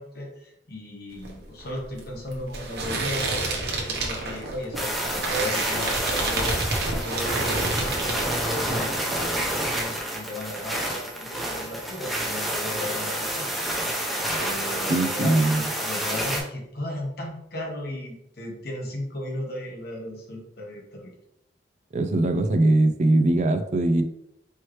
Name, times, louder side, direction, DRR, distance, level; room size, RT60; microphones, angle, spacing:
voice 1, 0.0-6.6 7.0-13.5 14.4-15.4 15.8-21.1, left 1 dB, 60° left, 0 dB, 1.2 m, -36 dB
sound 1, 1.1-8.9 9.1-9.8, right 2 dB, 60° right, 1.0 m, -29 dB
sound 2, 4.7-16.4, right 1 dB, ahead, 0.8 m, -29 dB
voice 2, 14.9-15.7 21.9-24.0, right 2 dB, 40° right, 7 dB, 0.4 m, -21 dB
4.5 x 3.1 x 3.1 m, 0.77 s
head